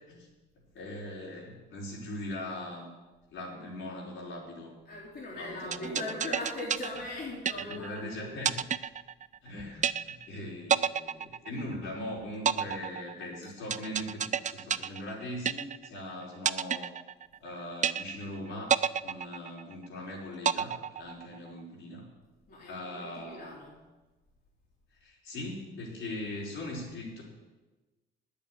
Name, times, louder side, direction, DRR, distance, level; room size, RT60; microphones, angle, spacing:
voice 1, 0.7-2.9 3.3-4.8 5.3-6.0 7.5-8.5 9.4-16.9 17.4-18.8 19.0-22.1 22.7-23.6 25.0-27.2, left 1 dB, 75° left, -3 dB, 4.9 m, -40 dB
voice 2, 4.9-8.3 22.5-23.7, left 2 dB, 50° left, -4 dB, 3.1 m, -39 dB
sound 1, 5.7-8.0 8.4-9.5 9.8-10.4 10.7-12.0 12.5-16.0 16.5-17.5 17.8-18.4 18.7-20.0 20.4-21.5, right 8 dB, 35° right, 0.5 m, -30 dB
9.4 x 8.5 x 9.4 m, 1.2 s
cardioid pair, 75°, 21 cm